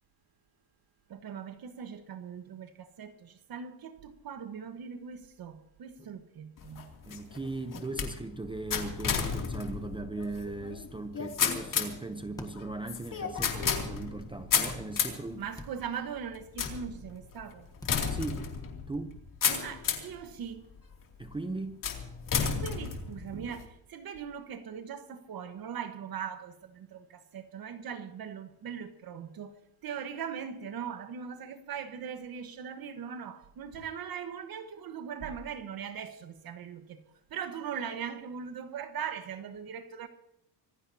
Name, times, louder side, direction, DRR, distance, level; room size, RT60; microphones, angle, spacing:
voice 1, 1.1-6.9 15.4-17.7 19.5-20.7 22.4-29.5 29.8-37.0 37.3-40.1, right 7 dB, 45° right, 1.4 m, -40 dB
sound 1, 6.6-20.2 20.8-21.2 21.8-23.6, left 7 dB, 40° left, 2.8 m, -33 dB
voice 2, 7.1-15.5 18.1-18.5 18.9-19.2 21.2-21.9, right 3 dB, 10° right, 0.7 m, -38 dB
sound 2, 12.4-12.5 13.4-13.5 14.7-14.8 15.6-15.7 16.6-16.8 17.8-18.0 18.3-18.4, left 1 dB, 5° left, 1.5 m, -43 dB
26.0 x 16.0 x 2.8 m
cardioid pair, 150°, 49 cm